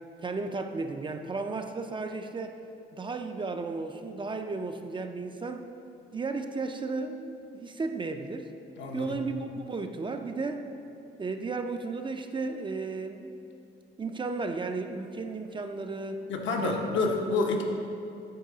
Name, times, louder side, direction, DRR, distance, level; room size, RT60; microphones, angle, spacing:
voice 1, 0.2-2.6 2.9-5.7 6.1-8.5 8.9-10.7 11.2-13.3 14.0-16.2 16.6-16.8 17.2-17.6, right 3 dB, 25° right, 6 dB, 0.4 m, -34 dB
voice 2, 8.8-9.1 16.3-17.6, left 3 dB, 75° left, 2 dB, 0.8 m, -28 dB
8.4 x 3.8 x 3.8 m, 2.7 s
cardioid pair, 90°, 20 cm